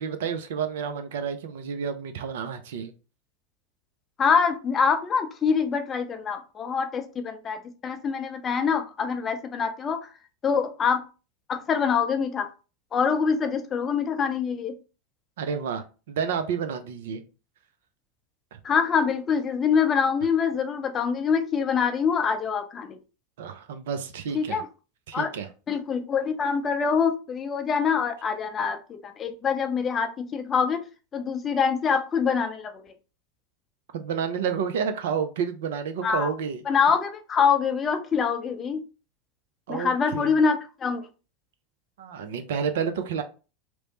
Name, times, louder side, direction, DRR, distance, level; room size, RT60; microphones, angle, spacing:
voice 1, 0.0-2.9 15.4-17.2 18.5-18.6 23.4-24.6 25.1-25.5 33.9-36.6 39.7-40.4 42.0-43.2, right 7 dB, 65° right, 9 dB, 0.4 m, -30 dB
voice 2, 4.2-10.1 10.4-11.0 11.5-12.5 12.9-14.7 18.6-23.0 24.3-24.7 25.1-25.3 25.7-30.8 31.1-32.9 36.0-36.3 36.7-38.8 39.7-41.1, left 6 dB, 30° left, 6 dB, 0.5 m, -25 dB
2.9 x 2.0 x 2.8 m, 0.33 s
figure-of-eight pair, 85°, 0 cm